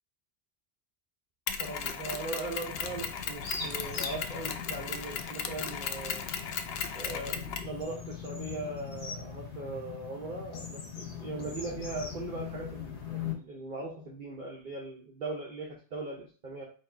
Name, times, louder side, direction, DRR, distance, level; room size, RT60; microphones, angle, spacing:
Mechanisms, 1.5-7.8, left 7 dB, 70° left, 0.8 m, -36 dB
voice 1, 1.6-6.2 6.9-16.6, right 2 dB, 50° right, -3 dB, 0.9 m, -39 dB
sound 1, 2.6-13.3, left 6 dB, 85° left, 1.2 m, -41 dB
4.5 x 2.4 x 4.4 m, 0.39 s
omnidirectional pair, 1.1 m